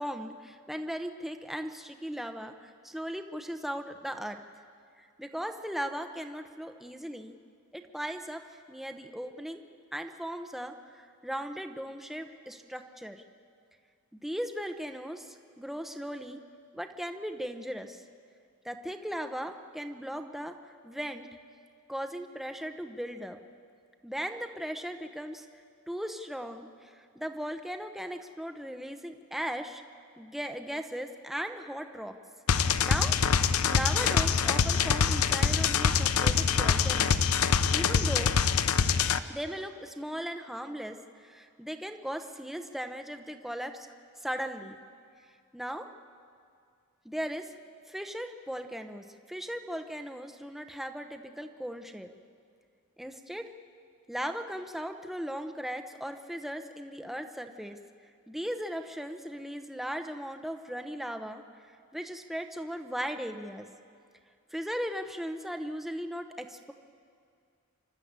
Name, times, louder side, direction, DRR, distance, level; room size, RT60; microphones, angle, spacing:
voice 1, 0.0-4.4 5.0-7.4 7.7-9.6 9.9-13.2 14.1-16.4 16.7-18.0 18.6-21.3 21.9-23.4 24.0-25.5 25.9-29.8 30.2-32.1 32.8-33.2 33.6-37.2 37.7-38.3 39.3-43.9 44.2-44.7 45.5-45.9 47.0-47.5 47.9-52.1 53.0-53.4 54.1-57.8 58.3-63.7 64.5-66.7, equal, ahead, 6 dB, 0.8 m, -37 dB
sound 1, 32.5-39.2, left 6 dB, 80° left, 0.7 m, -25 dB
28.0 x 12.5 x 8.1 m, 2.2 s
head